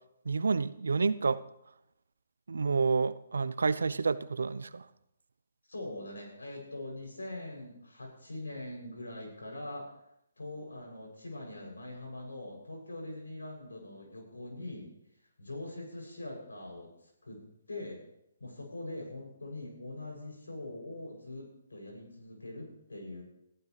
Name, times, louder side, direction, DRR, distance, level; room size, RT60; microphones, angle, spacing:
voice 1, 0.3-1.4 2.5-4.8, right 4 dB, 70° right, 15 dB, 0.8 m, -29 dB
voice 2, 5.7-10.0 10.4-14.9 15.4-16.9 17.2-18.0 18.4-23.2, left 2 dB, 80° left, 0 dB, 7.6 m, -43 dB
21.5 x 14.5 x 3.4 m, 0.80 s
figure-of-eight pair, 140°, 0 cm